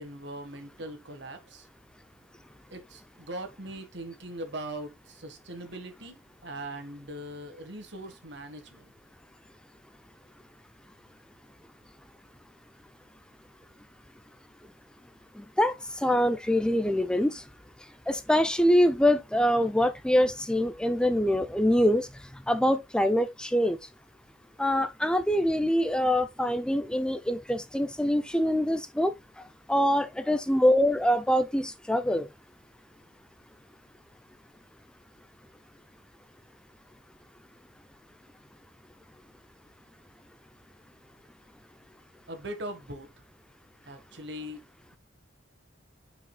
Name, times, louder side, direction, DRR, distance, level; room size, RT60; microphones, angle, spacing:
voice 1, 0.0-1.7 2.7-8.9 42.3-43.1 43.8-44.6, right 1 dB, 60° right, 1.5 m, -40 dB
voice 2, 15.4-17.4 18.1-22.1 22.5-23.8 24.6-29.1 29.7-32.3, equal, 5° left, 0.4 m, -24 dB
8.5 x 5.0 x 2.2 m
head